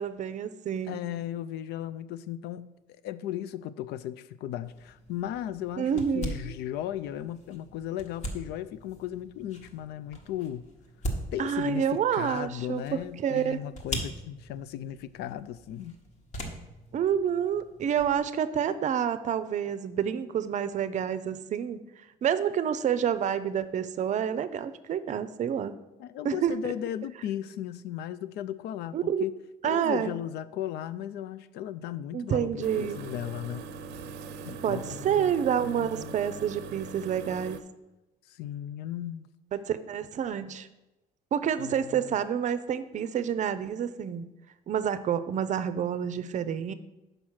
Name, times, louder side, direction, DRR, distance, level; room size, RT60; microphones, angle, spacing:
voice 1, 0.0-1.0 5.8-6.5 11.4-13.6 16.9-21.8 22.2-25.8 26.2-26.5 28.9-29.2 29.6-30.1 32.1-33.0 34.6-37.6 39.5-40.7 41.3-44.3 44.7-46.7, right 8 dB, 45° right, 0.5 m, -28 dB
voice 2, 0.9-2.7 3.0-10.7 11.3-16.0 26.0-29.3 29.6-33.6 34.4-35.3 35.6-36.2 38.3-39.3 41.6-42.2, left 11 dB, 80° left, 0.4 m, -36 dB
sound 1, 4.6-18.2, equal, 40° left, 1.3 m, -41 dB
sound 2, 32.6-37.6, right 5 dB, 90° right, 0.5 m, -41 dB
5.7 x 5.2 x 6.3 m
cardioid pair, 110°, 17 cm